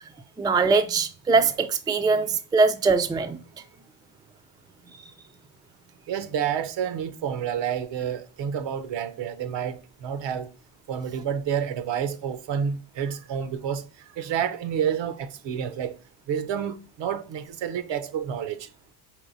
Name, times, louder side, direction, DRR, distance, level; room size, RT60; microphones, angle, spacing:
voice 1, 0.4-3.4, right 4 dB, 10° right, 0.4 m, -22 dB
voice 2, 6.1-10.5 10.9-13.8 14.2-15.9 16.3-18.7, right 8 dB, 70° right, 0.8 m, -29 dB
4.6 x 3.1 x 2.6 m
supercardioid pair, 75°, 45 cm